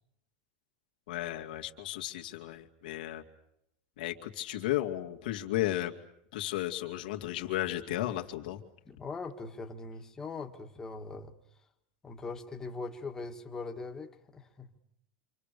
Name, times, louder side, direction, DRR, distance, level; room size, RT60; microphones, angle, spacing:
voice 1, 1.1-3.2 4.0-5.9 6.3-8.6, left 14 dB, 80° left, 3 dB, 2.5 m, -34 dB
voice 2, 8.8-11.3 12.0-14.7, left 3 dB, 10° left, 3 dB, 1.9 m, -41 dB
28.0 x 27.0 x 6.9 m, 0.79 s
supercardioid pair, 170°, 5 cm